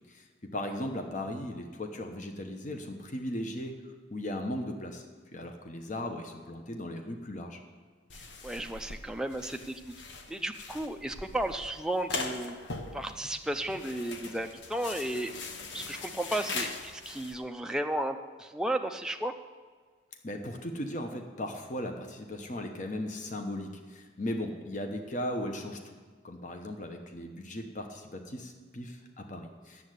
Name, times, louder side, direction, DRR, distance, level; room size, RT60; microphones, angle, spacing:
voice 1, 0.1-3.7 4.1-5.0 5.3-7.6 20.2-26.0 26.2-29.8, left 1 dB, 40° left, 4 dB, 1.0 m, -37 dB
sound 1, 8.1-17.3, left 3 dB, 70° left, 1.0 m, -41 dB
voice 2, 8.1-9.9 10.3-12.5 12.9-15.3 15.7-19.3, right 1 dB, 5° right, 4 dB, 0.4 m, -34 dB
9.7 x 7.5 x 8.1 m, 1.5 s
head